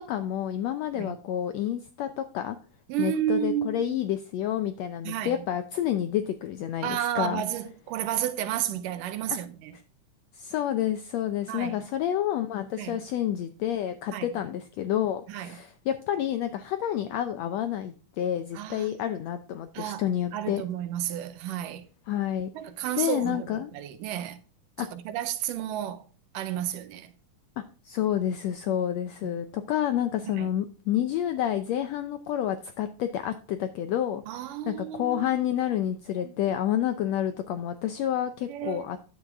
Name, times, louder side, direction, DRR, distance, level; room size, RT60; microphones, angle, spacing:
voice 1, 0.0-2.6 3.0-7.4 9.3-9.4 10.3-20.6 22.1-22.5 23.0-23.7 24.8-24.9 27.6-34.2 34.7-39.0, left 11 dB, 80° left, 1.5 m, -29 dB
voice 2, 2.9-4.0 5.0-5.4 6.8-9.8 11.5-11.8 12.8-13.0 14.1-14.3 15.3-15.6 18.5-19.0 19.7-20.1 20.3-21.8 22.6-24.4 24.8-26.1 26.3-27.1 28.7-28.8 29.2-29.3 30.4-30.5 34.3-35.2 36.2-36.3 38.5-39.0, right 11 dB, 90° right, 2.4 m, -32 dB
10.5 x 7.3 x 3.5 m
omnidirectional pair, 3.7 m